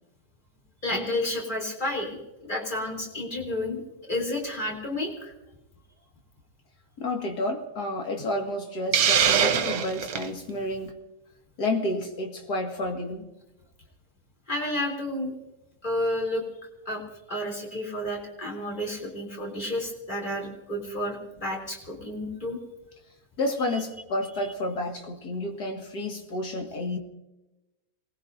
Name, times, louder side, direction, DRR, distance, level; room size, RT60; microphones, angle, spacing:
voice 1, 0.8-3.8 4.1-5.3 14.5-15.3 15.8-16.5 16.9-17.0 17.3-22.6, left 1 dB, 25° left, -1 dB, 3.5 m, -31 dB
voice 2, 7.0-10.9 11.6-13.2 23.4-27.0, left 1 dB, 70° left, 2 dB, 2.6 m, -30 dB
Hiss, 8.9-10.3, right 8 dB, 65° right, 1.3 m, -22 dB
27.0 x 19.5 x 2.7 m, 0.98 s
omnidirectional pair, 1.8 m